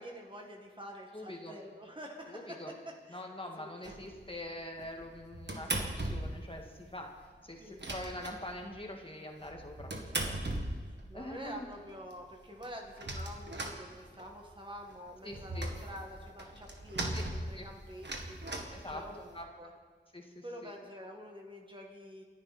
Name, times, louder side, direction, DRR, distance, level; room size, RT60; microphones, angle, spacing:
voice 1, 0.0-3.2 3.6-3.7 7.6-7.8 10.2-10.4 10.8-19.7 20.4-22.2, equal, 25° right, 0 dB, 1.8 m, -47 dB
voice 2, 1.1-1.6 2.3-2.7 3.1-7.1 7.4-9.9 10.2-10.4 11.1-11.7 15.2-15.7 17.1-17.2 17.6-17.7 18.7-19.0 19.3-19.5 20.1-20.7, left 1 dB, 25° left, 1 dB, 1.9 m, -44 dB
sound 1, 3.8-4.3 4.8-6.5 6.8-6.9 7.2-7.3 7.5-8.9 9.4-11.2 11.7-11.8 12.1-12.2 12.4-14.5 14.8-19.4, right 1 dB, 65° right, 1.8 m, -38 dB
28.5 x 10.5 x 4.3 m, 1.5 s
wide cardioid pair, 65°, 20 cm